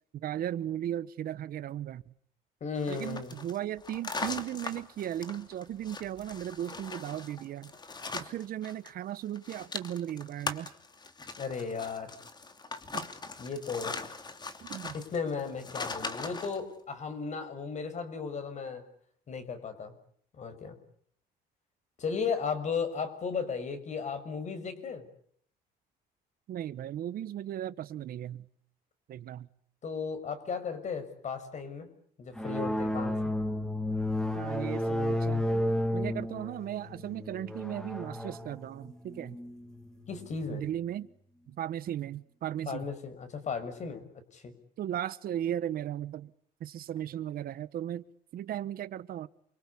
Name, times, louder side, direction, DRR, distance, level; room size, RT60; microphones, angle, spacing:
voice 1, 0.1-2.0 2.9-7.7 8.1-10.7 12.9-13.1 14.6-14.9 26.5-28.4 29.1-29.5 34.3-35.6 35.9-39.4 40.5-41.1 41.5-42.9 44.8-46.3 46.6-48.0 48.3-49.3, right 11 dB, 60° right, 1.2 m, -36 dB
voice 2, 2.6-3.3 11.4-12.1 13.4-14.0 14.9-18.8 19.3-19.9 20.4-20.8 22.0-25.0 29.8-31.9 32.2-33.2 40.1-40.6 42.7-44.5, left 5 dB, 45° left, 6.2 m, -35 dB
sound 1, 2.8-8.9 9.2-16.6, left 3 dB, 25° left, 2.8 m, -40 dB
sound 2, 32.4-40.5, left 1 dB, 5° left, 2.8 m, -32 dB
28.5 x 24.5 x 8.5 m
cardioid pair, 110°, 17 cm